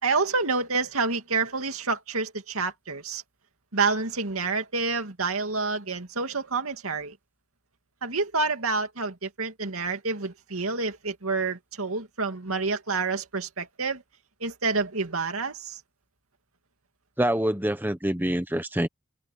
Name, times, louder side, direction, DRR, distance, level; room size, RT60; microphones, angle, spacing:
voice 1, 0.0-3.2 3.7-7.2 8.0-14.0 14.4-15.8, right 4 dB, 75° right, 2.4 m, -28 dB
voice 2, 17.2-18.9, right 1 dB, 10° right, 1.1 m, -26 dB
head